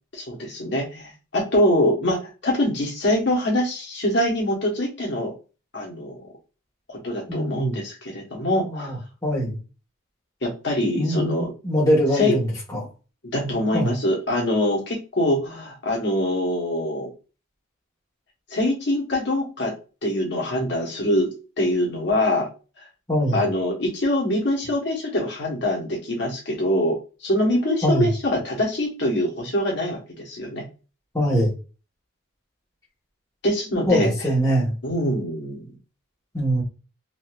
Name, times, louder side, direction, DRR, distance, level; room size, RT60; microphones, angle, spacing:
voice 1, 0.1-5.3 5.7-6.2 6.9-9.0 10.4-11.5 12.1-12.3 13.3-17.1 18.5-19.7 20.0-21.3 21.6-22.5 22.8-22.9 23.3-30.0 30.2-30.6 33.4-34.1 34.8-35.7, left 1 dB, 55° left, -2 dB, 1.3 m, -24 dB
voice 2, 7.3-7.8 8.6-9.0 9.2-9.6 11.0-12.9 13.4-13.9 23.1-23.4 27.8-28.1 31.1-31.5 33.9-34.7 36.3-36.6, equal, 15° left, -6 dB, 1.5 m, -22 dB
4.0 x 2.7 x 2.5 m, 0.33 s
head